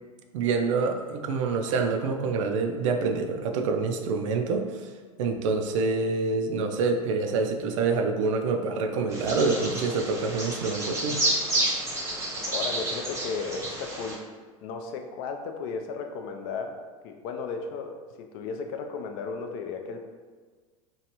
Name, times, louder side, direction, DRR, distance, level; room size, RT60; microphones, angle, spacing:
voice 1, 0.3-4.7 5.2-11.2, right 4 dB, 60° right, 5 dB, 0.4 m, -26 dB
Bird vocalization bird call bird song, 9.1-14.1, right 1 dB, 15° right, 0.8 m, -30 dB
voice 2, 12.5-14.2 14.6-16.8 17.0-20.0, left 5 dB, 45° left, 4 dB, 0.4 m, -34 dB
3.0 x 2.4 x 2.9 m, 1.5 s
figure-of-eight pair, 85°, 18 cm